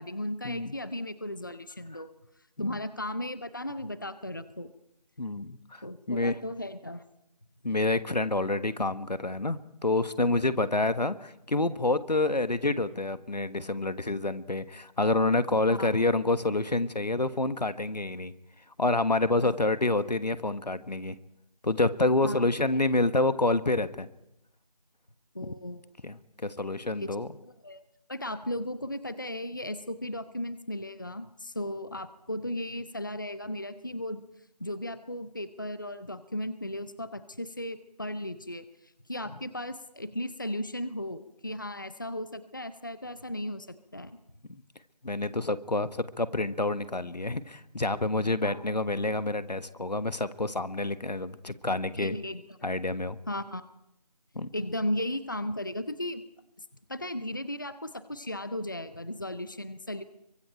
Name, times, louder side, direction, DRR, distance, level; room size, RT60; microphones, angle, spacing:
voice 1, 0.0-2.1 2.6-4.7 5.8-7.0 15.7-15.9 19.4-19.5 22.2-22.4 25.3-25.9 27.0-27.1 27.4-27.8 28.1-34.2 34.6-38.7 39.1-43.7 43.9-44.2 48.4-48.6 52.0-52.7 53.3-53.6 54.5-56.2 56.9-60.0, left 1 dB, 30° left, 13 dB, 0.7 m, -36 dB
voice 2, 5.2-6.4 7.6-18.3 18.8-21.2 21.6-24.1 25.4-25.5 26.0-27.4 44.5-44.6 45.0-52.2 52.6-53.2 54.3-54.5, left 2 dB, 85° left, 13 dB, 1.4 m, -28 dB
26.0 x 24.0 x 4.5 m, 0.82 s
figure-of-eight pair, 175°, 21 cm